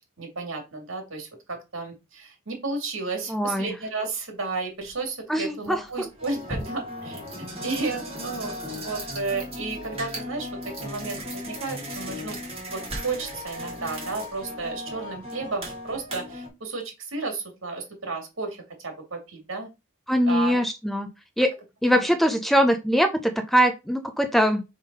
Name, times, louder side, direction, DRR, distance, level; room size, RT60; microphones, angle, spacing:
voice 1, 0.0-12.4 12.7-19.7 20.3-20.6 21.9-22.1, right 3 dB, 65° right, 4 dB, 2.5 m, -33 dB
voice 2, 3.3-3.7 5.3-5.8 20.1-21.1 21.4-21.6 21.8-24.6, equal, ahead, 6 dB, 0.7 m, -22 dB
sound 1, 4.8-4.9 5.6-16.5, equal, 30° right, 2.6 m, -36 dB
5.5 x 3.6 x 5.4 m, 0.25 s
head